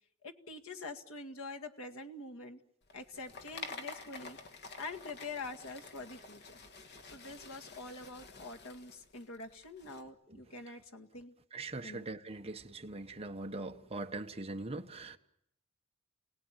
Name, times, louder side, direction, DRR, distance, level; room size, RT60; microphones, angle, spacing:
voice 1, 0.2-2.6 2.9-11.4 11.8-12.1, left 3 dB, 70° left, 4 dB, 2.0 m, -46 dB
sound 1, 2.8-10.0, left 3 dB, 50° left, 1.8 m, -49 dB
voice 2, 11.5-15.2, right 2 dB, 30° right, 5 dB, 1.3 m, -41 dB
29.5 x 18.0 x 9.0 m, 0.77 s
head